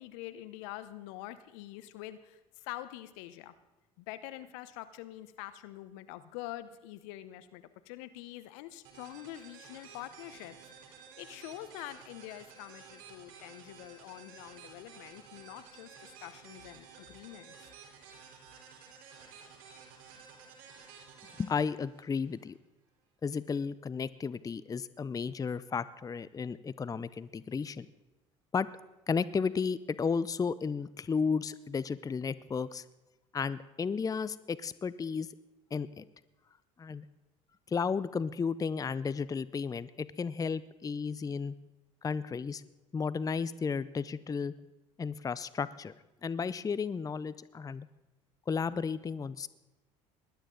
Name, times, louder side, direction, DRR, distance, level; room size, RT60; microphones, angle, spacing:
voice 1, 0.0-3.5 4.0-10.6 11.2-17.7, left 14 dB, 75° left, 13 dB, 0.9 m, -45 dB
sound 1, 8.8-22.5, right 6 dB, 65° right, 4.2 m, -53 dB
voice 2, 21.4-22.6 23.2-27.9 28.5-28.7 29.1-32.8 33.3-35.3 35.7-36.1 36.8-37.1 37.7-41.5 42.0-42.6 42.9-44.5 45.0-45.9 46.2-47.9 48.5-49.5, left 5 dB, 20° left, 17 dB, 0.5 m, -33 dB
20.0 x 11.5 x 3.9 m, 1.1 s
hypercardioid pair, 65°, 16 cm